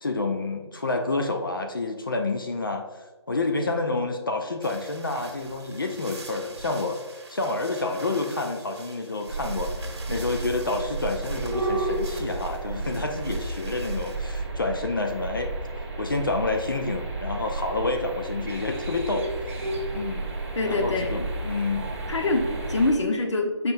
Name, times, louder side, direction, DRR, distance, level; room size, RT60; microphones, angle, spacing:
voice 1, 0.0-15.5 16.0-19.7 19.9-20.3 20.6-21.9, left 3 dB, 50° left, 5 dB, 0.6 m, -29 dB
sound 1, 4.6-14.2, right 3 dB, 65° right, 1.4 m, -45 dB
sound 2, 9.3-22.9, right 2 dB, 30° right, 1.5 m, -32 dB
voice 2, 20.5-21.3 22.1-23.7, left 2 dB, 85° left, 3 dB, 1.1 m, -25 dB
7.5 x 5.8 x 2.6 m, 1.3 s
hypercardioid pair, 180°, 15 cm